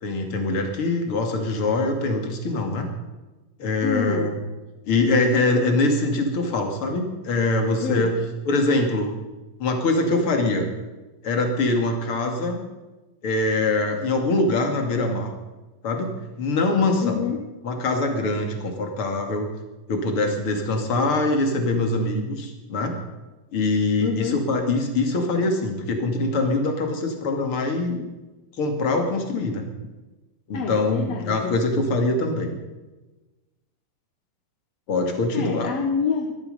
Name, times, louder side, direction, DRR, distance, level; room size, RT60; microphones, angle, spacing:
voice 1, 0.0-2.9 3.6-4.4 4.9-8.1 8.4-9.2 9.6-10.7 11.2-12.6 13.2-15.3 15.8-17.2 17.6-19.5 19.9-22.9 23.5-28.1 28.6-29.6 30.5-32.5 34.9-35.7, left 2 dB, 40° left, 4 dB, 2.8 m, -23 dB
voice 2, 3.8-4.4 7.8-8.2 17.0-17.5 24.0-24.5 30.5-31.6 35.3-36.3, left 6 dB, 60° left, 3 dB, 2.0 m, -27 dB
19.5 x 13.0 x 5.4 m, 1.2 s
omnidirectional pair, 4.1 m